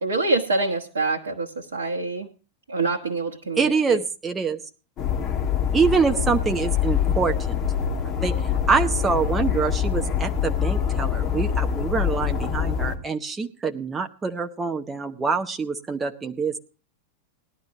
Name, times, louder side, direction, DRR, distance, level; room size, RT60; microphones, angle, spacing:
voice 1, 0.0-2.3 2.7-4.0, right 3 dB, 70° right, 1 dB, 1.1 m, -26 dB
voice 2, 3.6-4.6 5.7-7.6 8.1-16.6, right 5 dB, 15° right, 5 dB, 0.8 m, -25 dB
sound 1, 5.0-13.0, left 8 dB, 35° left, 2.3 m, -25 dB
19.0 x 11.5 x 3.0 m, 0.35 s
figure-of-eight pair, 90°, 0 cm